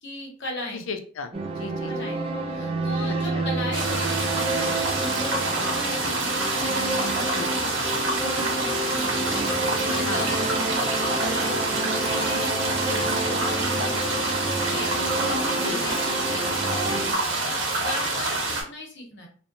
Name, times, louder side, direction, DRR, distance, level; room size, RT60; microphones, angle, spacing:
voice 1, 0.0-0.8 1.9-16.0 16.3-17.1 17.8-19.3, left 1 dB, 55° left, 0 dB, 0.9 m, -37 dB
voice 2, 0.7-2.1 3.3-3.4 7.3-7.5 10.1-10.3 12.9-13.1 15.6-15.8 16.8-17.0, left 4 dB, 75° left, 7 dB, 0.4 m, -35 dB
sound 1, 1.3-17.1, right 2 dB, 25° right, 0.3 m, -29 dB
sound 2, 3.7-18.6, right 2 dB, 60° right, 0.8 m, -27 dB
2.7 x 2.1 x 2.5 m, 0.43 s
head